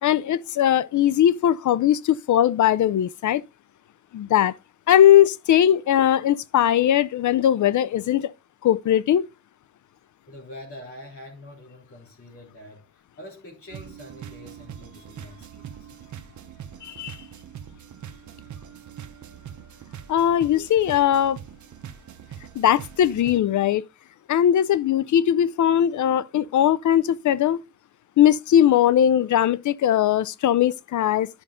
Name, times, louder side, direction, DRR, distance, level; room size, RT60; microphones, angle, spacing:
voice 1, 0.0-3.4 4.1-4.5 4.9-8.3 8.6-9.3 16.8-17.2 20.1-21.4 22.6-23.8 24.3-27.6 28.2-31.3, left 10 dB, 80° left, 0.5 m, -19 dB
voice 2, 10.3-15.9, left 1 dB, 50° left, 3.2 m, -44 dB
sound 1, 13.7-23.4, right 9 dB, 80° right, 0.9 m, -42 dB
10.5 x 5.6 x 3.7 m
wide cardioid pair, 140°, 29 cm